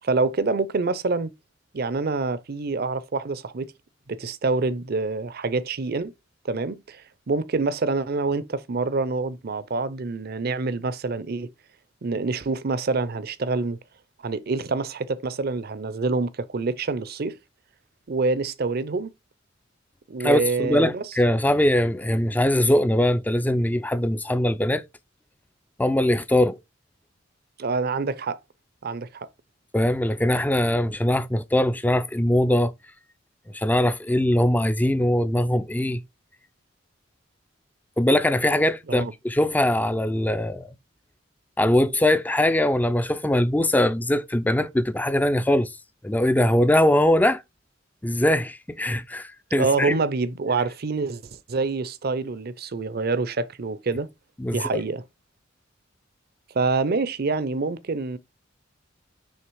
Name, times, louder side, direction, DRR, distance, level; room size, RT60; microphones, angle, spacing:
voice 1, 0.0-1.3 1.7-3.7 4.1-6.1 6.4-7.0 7.3-11.5 12.0-13.8 14.2-17.4 18.1-19.1 20.1-21.0 27.6-28.4 28.8-29.3 38.9-39.1 49.6-54.1 54.5-55.0 56.5-58.2, right 3 dB, 50° right, 0.6 m, -26 dB
voice 2, 20.2-24.8 25.8-26.6 29.7-32.7 33.5-36.0 38.0-40.7 41.6-45.7 46.0-47.4 48.0-50.0 54.4-54.8, left 1 dB, 10° left, 0.4 m, -21 dB
6.5 x 3.3 x 4.6 m
head